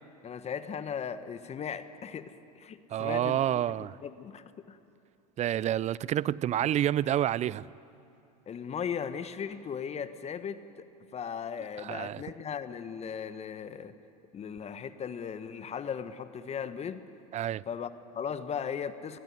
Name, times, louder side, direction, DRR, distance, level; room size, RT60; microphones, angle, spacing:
voice 1, 0.2-4.8 6.5-6.7 8.5-10.9 11.1-13.9 14.3-17.0 17.7-19.2, left 7 dB, 35° left, 1.3 m, -37 dB
voice 2, 2.9-4.0 5.4-7.6 11.8-12.2 17.3-17.6, right 11 dB, 35° right, 0.5 m, -28 dB
21.0 x 19.5 x 9.7 m
hypercardioid pair, 85°, 20 cm